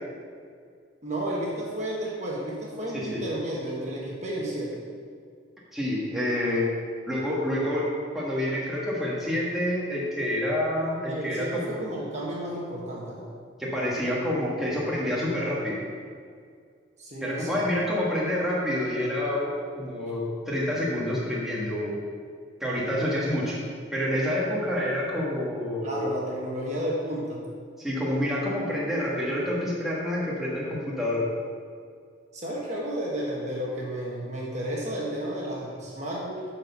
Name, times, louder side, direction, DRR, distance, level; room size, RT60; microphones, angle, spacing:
voice 1, 1.0-4.8 11.1-13.3 17.0-17.7 25.8-27.5 32.3-36.4, right 1 dB, 35° right, -4 dB, 1.4 m, -32 dB
voice 2, 2.9-3.2 5.7-6.7 7.1-7.9 8.1-11.8 13.6-15.8 17.2-22.0 22.6-23.6 23.9-26.1 27.8-31.2, left 1 dB, ahead, -7 dB, 1.6 m, -28 dB
11.0 x 4.5 x 5.6 m, 2.1 s
head